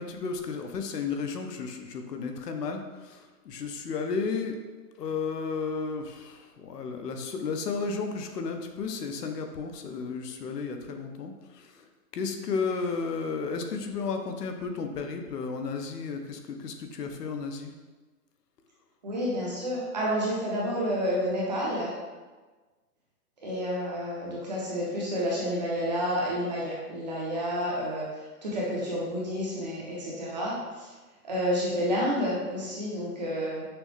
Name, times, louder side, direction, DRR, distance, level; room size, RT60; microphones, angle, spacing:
voice 1, 0.0-4.6 5.0-17.7, left 5 dB, 85° left, 5 dB, 0.8 m, -33 dB
voice 2, 19.0-21.9 23.4-28.1 28.4-30.6 31.2-33.7, equal, 30° right, -5 dB, 0.6 m, -29 dB
6.0 x 2.0 x 3.1 m, 1.3 s
hypercardioid pair, 170°, 47 cm